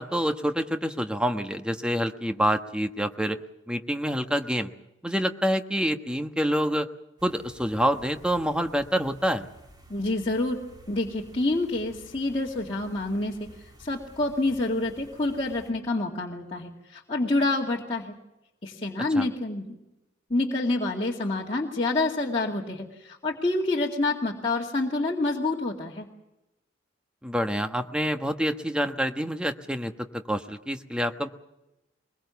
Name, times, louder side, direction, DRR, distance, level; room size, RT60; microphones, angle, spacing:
voice 1, 0.0-3.4 3.7-4.7 5.0-6.9 7.2-9.5 19.1-19.3 27.2-29.9 30.3-31.3, equal, 5° right, 7 dB, 1.2 m, -27 dB
sound 1, 7.2-15.7, equal, 20° right, 3.3 m, -52 dB
voice 2, 9.9-10.6 10.9-18.1 18.6-19.7 20.3-26.1, left 2 dB, 30° left, -4 dB, 2.2 m, -27 dB
23.0 x 22.0 x 7.1 m, 0.94 s
head